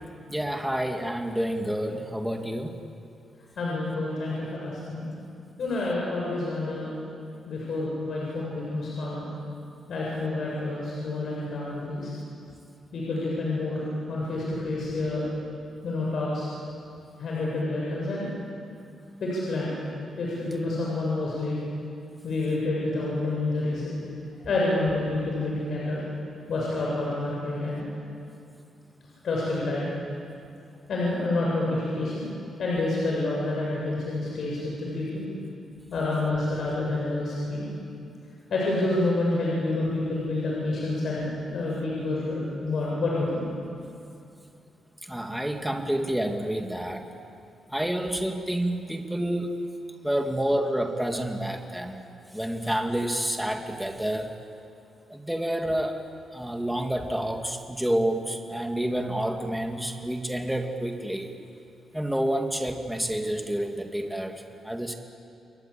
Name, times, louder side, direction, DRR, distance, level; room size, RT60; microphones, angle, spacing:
voice 1, 0.3-2.8 45.1-47.0 47.7-49.6 50.0-52.0 52.3-54.3 55.1-56.0 56.3-61.3 61.9-65.0, right 1 dB, 5° right, 4 dB, 2.2 m, -29 dB
voice 2, 3.6-5.1 5.6-6.9 7.5-9.3 9.9-12.1 12.9-15.3 15.8-16.5 17.2-18.3 19.2-19.7 20.2-21.6 22.2-23.9 24.4-26.0 26.5-27.9 29.2-29.9 30.9-32.3 32.6-35.3 35.9-37.7 38.5-43.5, left 2 dB, 55° left, -4 dB, 7.6 m, -28 dB
29.0 x 22.0 x 8.8 m, 2.5 s
cardioid pair, 135°, 0 cm